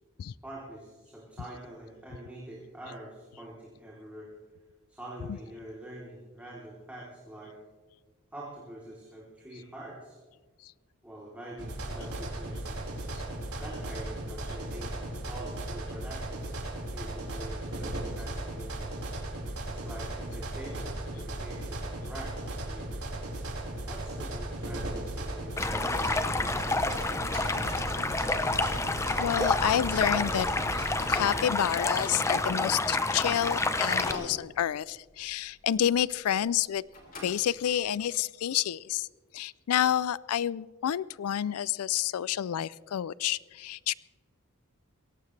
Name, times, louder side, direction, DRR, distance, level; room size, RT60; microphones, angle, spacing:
voice 1, 0.4-4.3 4.9-7.5 8.3-10.2 11.0-12.8 13.6-16.4 16.9-18.9 19.6-23.0 23.9-27.3, right 1 dB, 5° right, -6 dB, 3.1 m, -45 dB
sound 1, 11.6-31.2, right 1 dB, 90° right, 4.6 m, -36 dB
Stream, 25.6-34.1, left 2 dB, 15° left, 0.6 m, -29 dB
sound 2, 27.3-36.6 36.9-37.9, left 1 dB, 40° left, 3.8 m, -45 dB
voice 2, 29.2-30.5 30.7-36.8 37.2-39.1 39.3-43.9, left 10 dB, 90° left, 21 dB, 0.4 m, -29 dB
22.5 x 17.5 x 3.3 m, 1.4 s
head